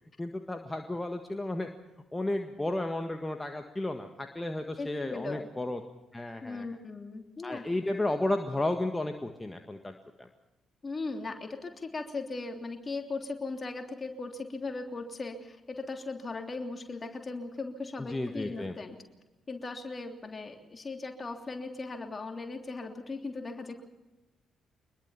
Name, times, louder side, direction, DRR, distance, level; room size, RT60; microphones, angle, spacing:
voice 1, 0.2-1.7 2.1-5.8 6.1-6.7 7.4-10.3 18.1-18.7, left 2 dB, 15° left, 5 dB, 1.7 m, -33 dB
voice 2, 4.8-5.5 6.4-7.6 10.8-19.0 19.5-23.8, left 3 dB, 35° left, 4 dB, 3.2 m, -38 dB
24.5 x 21.0 x 5.8 m, 1.1 s
figure-of-eight pair, 40°, 0 cm